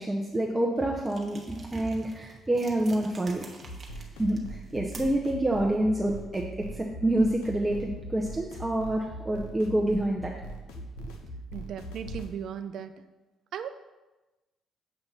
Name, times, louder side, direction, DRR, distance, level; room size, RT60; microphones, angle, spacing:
voice 1, 0.0-3.4 4.2-4.4 4.7-10.3, right 1 dB, 15° right, -1 dB, 0.7 m, -27 dB
sound 1, 1.0-5.3, right 3 dB, 40° right, 1.0 m, -49 dB
sound 2, 3.6-12.3, right 1 dB, 85° left, 0.6 m, -41 dB
voice 2, 11.5-13.0 13.5-13.7, right 8 dB, 70° right, 10 dB, 0.4 m, -37 dB
7.2 x 2.5 x 5.6 m, 1.1 s
supercardioid pair, 70°, 0 cm